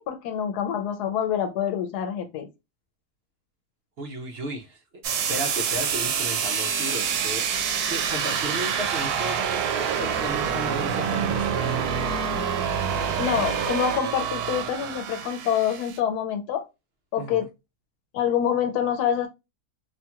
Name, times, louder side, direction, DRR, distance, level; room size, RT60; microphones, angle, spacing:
voice 1, 0.0-2.5 13.2-16.7 17.1-17.5 18.1-19.3, left 9 dB, 85° left, 1.2 m, -26 dB
voice 2, 4.0-5.0 5.3-7.4 7.9-11.7 17.2-17.5, right 1 dB, 55° right, 0.7 m, -34 dB
sound 1, 5.0-16.0, right 7 dB, 80° right, 1.1 m, -27 dB
2.8 x 2.8 x 2.2 m
omnidirectional pair, 1.6 m